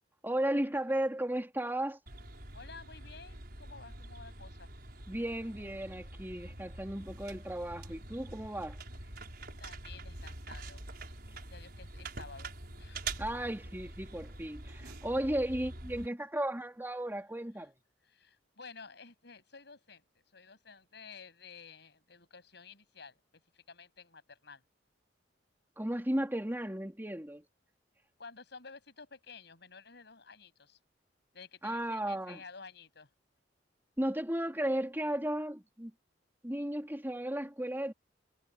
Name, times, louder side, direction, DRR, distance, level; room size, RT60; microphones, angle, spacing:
voice 1, 0.2-2.0 5.1-8.8 13.2-17.7 25.8-27.4 31.6-32.4 34.0-35.9 36.4-37.9, right 1 dB, 10° right, 3.0 m, -35 dB
sound 1, 2.1-16.1, right 2 dB, 55° right, 5.8 m, -45 dB
voice 2, 2.5-4.7 9.6-10.8 11.5-13.1 18.0-20.0 20.3-24.6 28.2-30.8 31.3-33.1, left 5 dB, 65° left, 7.9 m, -52 dB
head